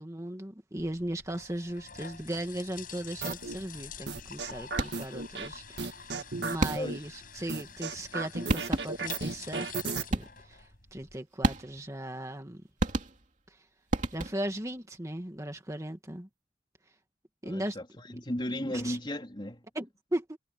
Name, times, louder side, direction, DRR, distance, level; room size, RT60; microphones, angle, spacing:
voice 1, 0.0-6.1 6.4-12.6 13.5-13.6 14.1-16.3 17.4-17.8 18.6-19.0 19.7-20.4, right 1 dB, 20° right, 2.1 m, -37 dB
sound 1, 0.8-11.2, left 6 dB, 50° left, 7.3 m, -47 dB
sound 2, 3.2-3.6 4.1-5.5 5.8-7.0 7.5-10.0, right 4 dB, 70° right, 1.9 m, -34 dB
sound 3, 4.7-5.2 6.6-7.1 8.1-8.2 8.5-9.1 10.1-10.6 11.4-12.0 12.8-13.5 13.9-14.6, right 1 dB, 45° right, 2.8 m, -31 dB
voice 2, 17.4-19.6, left 1 dB, 25° left, 3.6 m, -35 dB
head